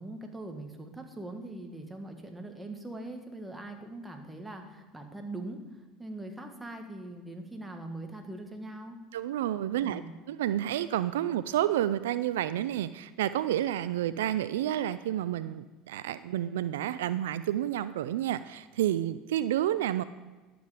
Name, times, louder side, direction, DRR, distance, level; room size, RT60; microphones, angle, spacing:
voice 1, 0.0-9.0 9.8-10.1, right 2 dB, 10° right, 4 dB, 1.7 m, -42 dB
voice 2, 9.1-10.0 10.3-20.0, right 12 dB, 80° right, 15 dB, 0.3 m, -30 dB
11.5 x 7.6 x 5.0 m, 1.2 s
hypercardioid pair, 85°, 0 cm